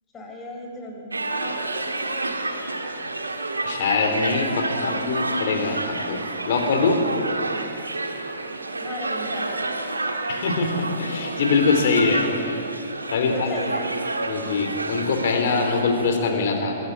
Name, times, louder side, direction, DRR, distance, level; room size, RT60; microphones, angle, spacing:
voice 1, 0.1-2.3 4.8-5.0 7.3-7.6 8.8-9.7 10.0-10.2 13.2-14.0, left 2 dB, 20° left, 2 dB, 4.0 m, -37 dB
sound 1, 1.1-16.3, right 2 dB, 80° right, 1.6 m, -29 dB
voice 2, 3.7-6.2 6.5-7.0 10.3-12.2 13.1-13.5 14.3-16.8, left 4 dB, 50° left, 4 dB, 3.7 m, -23 dB
22.5 x 16.0 x 9.0 m, 2.7 s
figure-of-eight pair, 110°, 0 cm